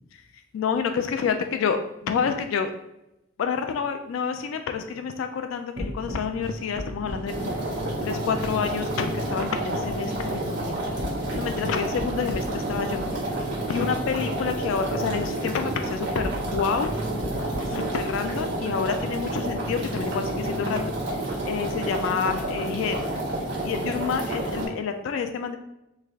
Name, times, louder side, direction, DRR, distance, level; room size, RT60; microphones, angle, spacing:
voice 1, 0.5-2.7 3.4-7.5 8.0-10.8 11.3-13.0 13.7-16.9 17.7-23.0 23.6-25.6, left 6 dB, 90° left, 7 dB, 0.3 m, -28 dB
sound 1, 5.8-21.0, equal, 40° right, 0.7 m, -37 dB
sound 2, 7.3-24.7, right 1 dB, 60° right, 1.1 m, -30 dB
3.2 x 2.4 x 3.5 m, 0.88 s
head